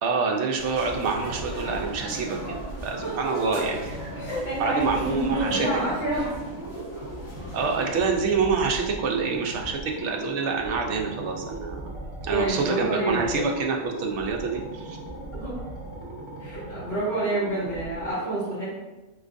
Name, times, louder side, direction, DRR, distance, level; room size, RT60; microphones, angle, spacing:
voice 1, 0.0-4.1 4.6-5.7 7.5-11.9 12.2-15.0, right 4 dB, 65° right, 2 dB, 0.8 m, -27 dB
sound 1, 0.6-8.0, equal, 70° left, 2.1 m, -39 dB
sound 2, 0.8-18.1, right 2 dB, 30° right, 0.6 m, -38 dB
voice 2, 3.0-3.4 4.2-6.3 12.3-13.4 15.3-15.5 16.4-18.7, right 1 dB, 45° left, -11 dB, 1.9 m, -28 dB
4.5 x 2.4 x 2.5 m, 1.1 s
omnidirectional pair, 1.4 m